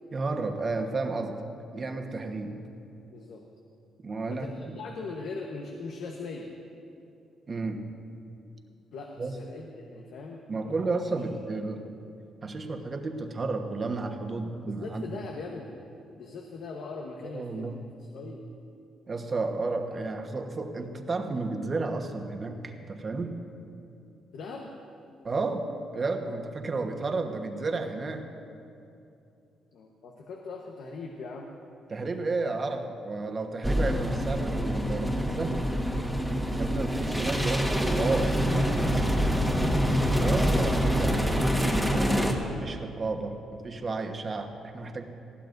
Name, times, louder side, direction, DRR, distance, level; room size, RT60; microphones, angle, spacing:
voice 1, 0.1-1.5 1.7-2.6 4.0-4.7 7.5-7.9 9.2-9.4 10.5-11.8 12.4-15.2 17.2-17.9 19.1-23.4 25.2-28.3 31.9-35.6 36.6-38.4 40.2-41.9 42.6-45.0, right 3 dB, 35° right, 4 dB, 1.2 m, -32 dB
voice 2, 3.1-3.4 4.3-6.5 8.9-10.7 14.6-15.7 16.2-18.4 24.3-24.7 29.7-31.5 40.3-40.6, left 3 dB, 75° left, 1 dB, 1.1 m, -40 dB
sound 1, 33.6-42.3, equal, 5° left, 1.5 m, -26 dB
19.5 x 15.0 x 2.6 m, 2.7 s
cardioid pair, 90°, 0 cm